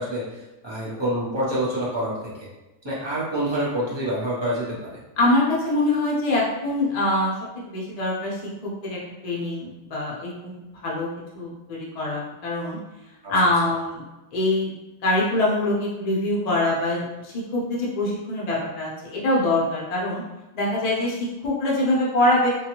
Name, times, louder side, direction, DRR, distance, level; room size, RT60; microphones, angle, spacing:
voice 1, 0.0-2.5 2.8-5.0 13.2-13.3, right 1 dB, 30° right, -8 dB, 0.6 m, -27 dB
voice 2, 5.2-10.5 10.8-11.1 11.3-12.8 13.3-14.0 14.3-14.7 15.0-20.2 20.5-22.5, left 1 dB, 45° left, -5 dB, 0.5 m, -24 dB
2.7 x 2.3 x 2.8 m, 1.1 s
omnidirectional pair, 1.5 m